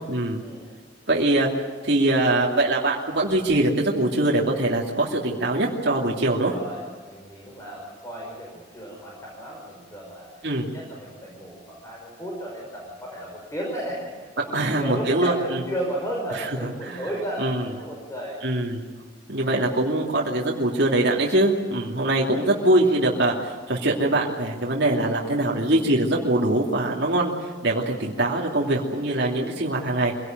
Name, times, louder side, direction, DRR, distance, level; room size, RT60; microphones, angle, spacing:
voice 1, 0.1-0.4 1.1-6.5 10.4-10.7 14.5-15.6 16.3-16.5 16.8-17.1 17.4-17.6 18.4-18.8 19.3-30.1, right 1 dB, 60° right, -3 dB, 2.8 m, -23 dB
voice 2, 6.5-10.3 10.7-18.4 22.2-22.4, right 1 dB, 15° left, -2 dB, 5.5 m, -34 dB
25.5 x 18.0 x 9.2 m, 1.4 s
head